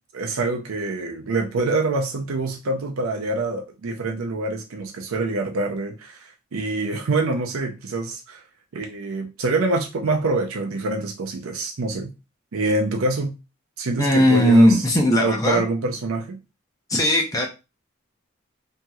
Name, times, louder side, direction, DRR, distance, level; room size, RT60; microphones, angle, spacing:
voice 1, 0.1-8.4 8.7-12.1 12.5-13.4 13.8-14.7 15.2-16.4, right 3 dB, 90° right, 0.5 m, -25 dB
voice 2, 14.0-15.6 16.9-17.5, left 1 dB, 15° left, 0.6 m, -17 dB
3.0 x 2.7 x 2.3 m
head